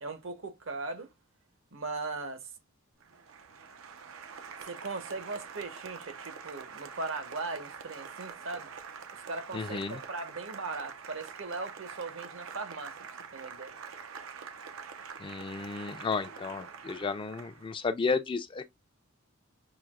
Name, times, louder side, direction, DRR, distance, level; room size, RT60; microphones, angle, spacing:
voice 1, 0.0-1.1 1.7-2.5 4.6-8.7 9.1-13.0 13.3-13.8, right 3 dB, 70° right, 0.9 m, -39 dB
Applause, 3.0-17.8, right 6 dB, 90° right, 0.7 m, -45 dB
voice 2, 9.5-10.0 15.2-18.7, left 4 dB, 25° left, 0.4 m, -33 dB
5.8 x 2.8 x 2.2 m
head